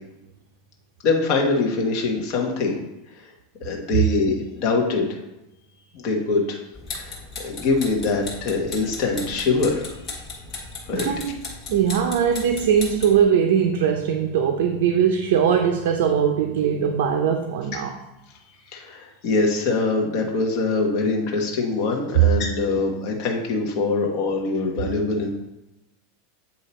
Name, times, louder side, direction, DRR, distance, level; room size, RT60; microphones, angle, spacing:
voice 1, 1.0-2.8 3.6-5.1 5.9-6.6 6.9-10.0 10.9-11.1 17.7-17.8 18.7-25.4, left 3 dB, 45° left, 1 dB, 1.2 m, -23 dB
sound 1, 6.7-13.2, left 3 dB, 30° left, 1.6 m, -36 dB
voice 2, 10.9-11.4 11.7-17.9 22.1-22.3, right 8 dB, 70° right, 4 dB, 0.6 m, -20 dB
8.3 x 2.8 x 4.3 m, 0.93 s
supercardioid pair, 155°, 0 cm